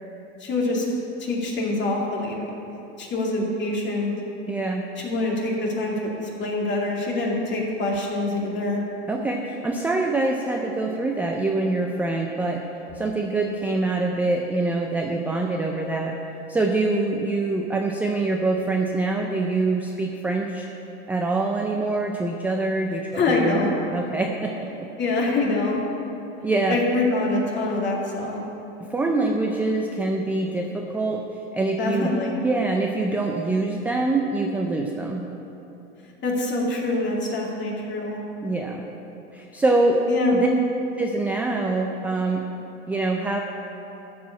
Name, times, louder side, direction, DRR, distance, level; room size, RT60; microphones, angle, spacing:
voice 1, 0.4-0.9 1.2-2.5 3.0-4.1 5.0-6.1 6.4-8.8 23.1-23.7 25.0-25.8 26.7-28.4 31.8-32.4 36.2-38.2 40.1-40.4, left 2 dB, 30° left, -2 dB, 2.3 m, -25 dB
voice 2, 4.5-4.8 9.1-12.6 13.0-16.2 16.5-20.7 21.1-24.5 26.4-26.8 28.9-31.2 31.5-32.1 32.4-35.3 38.4-38.9 39.3-40.0 40.3-40.5 41.0-42.5 42.9-43.4, right 2 dB, 5° right, 1 dB, 0.3 m, -24 dB
13.0 x 4.9 x 8.4 m, 2.9 s
supercardioid pair, 125°, 36 cm